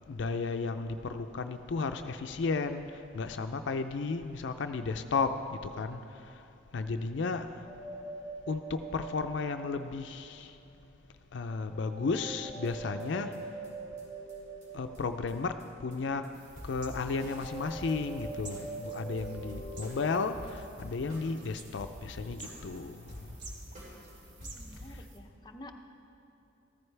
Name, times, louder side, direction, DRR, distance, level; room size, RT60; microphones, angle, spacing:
voice 1, 0.1-2.9 3.1-6.0 6.7-7.6 8.5-10.5 11.3-13.3 14.7-15.5 15.8-16.2 16.7-23.0, left 4 dB, 70° left, 8 dB, 0.4 m, -33 dB
sound 1, 7.6-10.3 11.7-15.6 17.0-20.0, right 3 dB, 10° right, 2.8 m, -44 dB
sound 2, 12.7-12.8 13.0-13.1 13.3-13.4 13.6-13.7 14.0-14.1 14.3-14.4 14.6-14.7 14.9-15.0 15.3-15.4 15.6-16.0 16.2-16.3 16.6-18.9 19.2-21.5 21.8-22.8 23.1-24.1 24.4-25.0, left 1 dB, 40° right, 3.4 m, -47 dB
sound 3, 16.3-25.2, right 3 dB, 65° right, 1.5 m, -52 dB
voice 2, 24.4-25.7, left 1 dB, 20° left, 3 dB, 0.7 m, -51 dB
14.0 x 14.0 x 3.3 m, 2.7 s
head